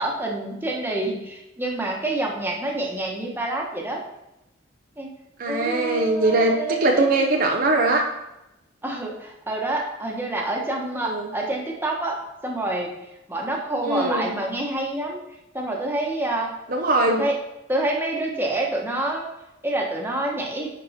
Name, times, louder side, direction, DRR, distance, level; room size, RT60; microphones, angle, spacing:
voice 1, 0.0-4.0 5.0-5.1 5.5-7.3 8.8-12.9 13.3-15.2 15.5-16.5 17.1-17.4 17.7-19.3 19.6-20.7, right 2 dB, 10° right, -1 dB, 1.3 m, -27 dB
voice 2, 5.4-8.0 11.0-11.3 13.8-14.3 16.7-17.3, right 2 dB, 45° right, 1 dB, 0.8 m, -21 dB
10.5 x 4.7 x 4.3 m, 0.91 s
head